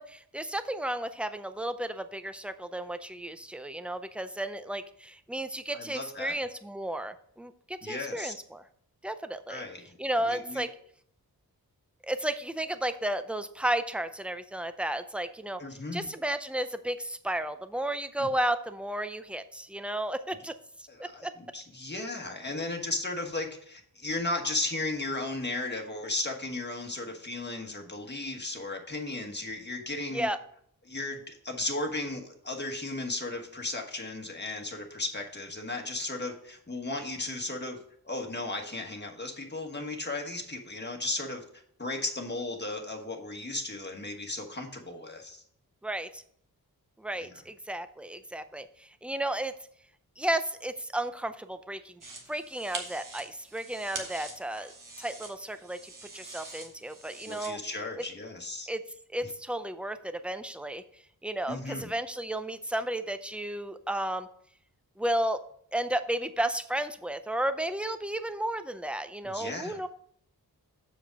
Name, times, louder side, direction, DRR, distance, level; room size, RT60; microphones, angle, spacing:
voice 1, 0.0-8.6 9.0-9.6 10.0-10.7 12.0-15.6 15.9-21.3 30.1-30.4 45.8-46.2 47.0-49.5 50.2-52.0 52.3-54.7 55.0-57.6 58.7-58.8 59.1-60.8 61.2-64.3 65.0-65.4 65.7-69.9, right 1 dB, 5° right, 11 dB, 0.5 m, -33 dB
voice 2, 5.7-6.3 7.8-8.3 9.5-10.0 10.2-10.6 15.6-16.0 18.2-18.3 20.9-30.3 30.8-37.8 38.0-41.4 41.8-45.4 47.2-47.3 57.3-58.7 59.2-59.3 61.5-61.9 69.2-69.8, left 2 dB, 30° left, 2 dB, 1.4 m, -35 dB
sound 1, 52.0-57.5, right 3 dB, 55° right, 1.6 m, -44 dB
7.4 x 4.9 x 5.2 m, 0.66 s
wide cardioid pair, 105°, 37 cm